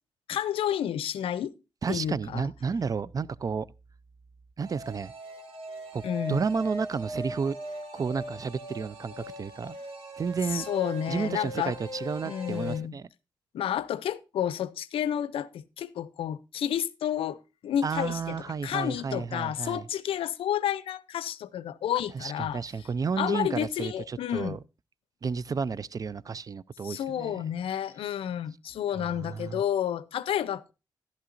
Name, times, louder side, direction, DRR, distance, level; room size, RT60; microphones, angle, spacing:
voice 1, 0.3-1.5 1.9-2.5 6.0-6.4 10.5-11.7 12.2-13.0 13.5-18.4 18.6-22.6 23.2-24.6 26.8-30.7, left 10 dB, 90° left, 0.5 m, -30 dB
voice 2, 1.8-3.7 4.6-5.1 5.9-6.0 6.3-7.6 7.9-9.8 10.2-10.7 11.1-13.1 17.8-19.9 22.1-24.6 25.2-27.5 29.0-29.6, right 5 dB, 40° right, 0.4 m, -32 dB
sound 1, 4.6-12.8, right 1 dB, 80° right, 1.9 m, -40 dB
11.5 x 11.0 x 2.5 m
cardioid pair, 60°, 9 cm